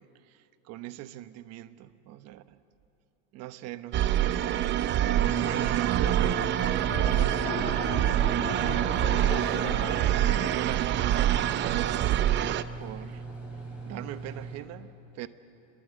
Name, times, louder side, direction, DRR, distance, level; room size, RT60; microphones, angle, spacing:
voice 1, 0.0-2.6 3.3-4.6 5.4-8.8 9.5-10.0 10.3-12.0 12.8-13.2 13.8-15.3, right 14 dB, 55° right, 12 dB, 1.0 m, -41 dB
sound 1, 3.9-12.6, right 12 dB, 35° right, 0.6 m, -26 dB
sound 2, 5.1-14.6, right 3 dB, 5° right, 6.9 m, -40 dB
sound 3, 5.3-10.6, left 5 dB, 75° left, 5.3 m, -38 dB
27.0 x 22.5 x 8.2 m, 2.7 s
cardioid pair, 155°, 31 cm